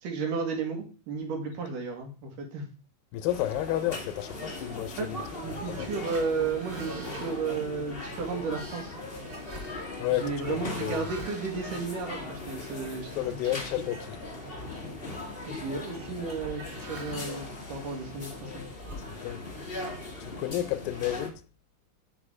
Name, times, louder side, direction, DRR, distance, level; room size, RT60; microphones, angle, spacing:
voice 1, 0.0-2.6 4.9-8.9 10.1-13.7 15.5-18.6, right 4 dB, 70° right, 3.2 m, -33 dB
voice 2, 3.1-5.0 5.8-5.9 10.0-11.0 13.2-14.2 17.2-17.4 19.2-19.4 20.2-21.3, left 13 dB, 85° left, 2.5 m, -31 dB
sound 1, 3.3-21.3, left 2 dB, 65° left, 0.5 m, -39 dB
sound 2, 5.6-12.7 13.2-13.4 13.7-14.4 14.6-15.3 15.9-17.4 18.0-19.6, right 1 dB, 25° right, 2.5 m, -47 dB
11.0 x 4.2 x 4.9 m
omnidirectional pair, 4.0 m